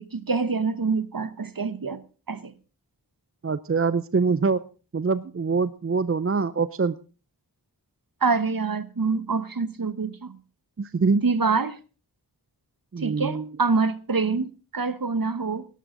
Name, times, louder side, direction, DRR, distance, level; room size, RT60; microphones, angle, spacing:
voice 1, 0.0-2.0 2.3-2.5 8.2-10.4 11.2-11.8 13.0-15.7, right 4 dB, 55° right, 1.1 m, -26 dB
voice 2, 3.4-4.6 4.9-6.9 10.8-11.2 12.9-13.4, right 4 dB, 35° right, 0.5 m, -24 dB
17.5 x 12.0 x 3.8 m
wide cardioid pair, 45°, 40 cm